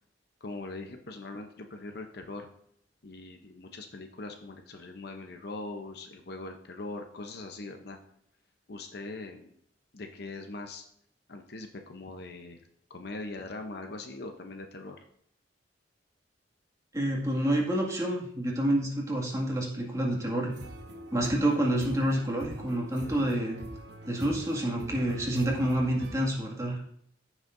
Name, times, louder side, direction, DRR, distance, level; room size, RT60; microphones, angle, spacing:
voice 1, 0.4-2.5 3.0-8.0 8.7-9.5 9.9-10.8 11.3-12.6 12.9-15.0, left 2 dB, 60° left, 5 dB, 0.7 m, -41 dB
voice 2, 16.9-20.5 21.1-23.6 24.0-26.9, right 1 dB, 20° right, -2 dB, 1.9 m, -28 dB
sound 1, 20.5-26.3, right 1 dB, 65° right, 1.1 m, -44 dB
14.5 x 6.3 x 2.6 m, 0.69 s
head